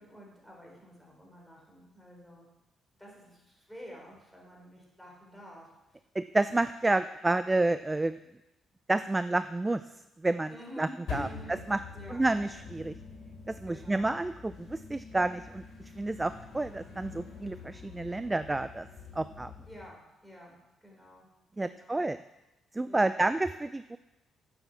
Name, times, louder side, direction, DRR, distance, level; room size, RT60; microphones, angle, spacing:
voice 1, 0.0-2.5 3.0-6.0 10.5-11.6 11.9-12.3 13.7-14.1 19.7-20.6 20.8-21.3 21.6-22.1 22.8-23.2, equal, ahead, -2 dB, 4.0 m, -50 dB
voice 2, 6.2-8.2 8.9-9.8 10.2-10.5 10.8-11.8 12.1-12.9 13.5-15.6 16.0-18.9 19.2-19.5 21.6-22.2 22.7-24.0, right 2 dB, 15° right, 12 dB, 0.3 m, -29 dB
sound 1, 11.1-19.9, left 5 dB, 70° left, 3.2 m, -45 dB
9.4 x 7.0 x 7.0 m, 0.97 s
cardioid pair, 90°, 0 cm